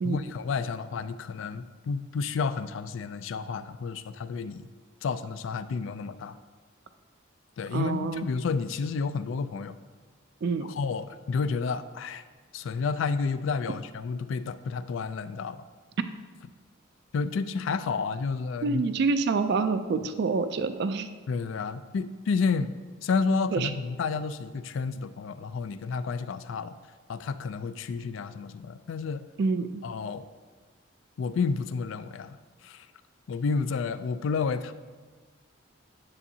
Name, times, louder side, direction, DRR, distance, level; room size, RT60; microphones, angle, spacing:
voice 1, 0.0-4.7 5.0-6.4 7.6-9.8 10.6-12.2 12.5-15.6 17.1-18.9 21.3-22.7 23.0-26.8 27.1-29.3 29.8-30.3 31.2-32.4 32.6-32.9 33.3-34.7, left 5 dB, 65° left, 12 dB, 0.3 m, -30 dB
voice 2, 7.7-8.3 10.4-10.7 18.6-21.1 23.5-23.7 29.4-29.8, right 4 dB, 55° right, 10 dB, 0.3 m, -27 dB
9.8 x 7.1 x 2.7 m, 1.4 s
head